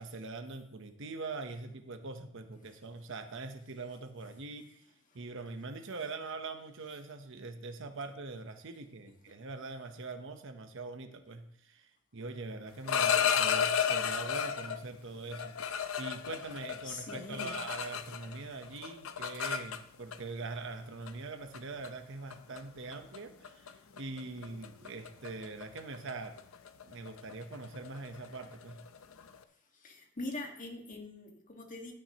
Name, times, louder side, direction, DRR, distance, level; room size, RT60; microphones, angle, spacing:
voice 1, 0.0-4.8 5.1-26.4 26.8-28.8, right 3 dB, 65° right, 7 dB, 0.9 m, -43 dB
sound 1, 12.7-14.8 15.3-18.4 18.6-20.2 21.1-21.2 21.5-21.9 22.3-22.6 22.9-23.2 23.4-23.7 24.0-29.4, left 7 dB, 80° left, 0.7 m, -33 dB
voice 2, 16.8-17.5 29.7-31.9, left 2 dB, 40° left, 2 dB, 1.7 m, -43 dB
13.0 x 9.3 x 3.0 m, 0.69 s
head